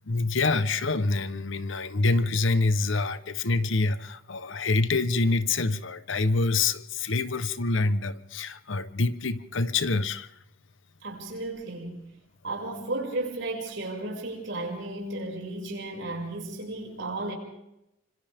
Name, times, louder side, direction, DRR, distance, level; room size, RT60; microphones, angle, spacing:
voice 1, 0.1-10.3, left 3 dB, 60° left, 0.9 m, -26 dB
voice 2, 11.0-12.0 12.4-17.3, right 2 dB, 55° right, 6.1 m, -34 dB
28.5 x 26.0 x 3.6 m
head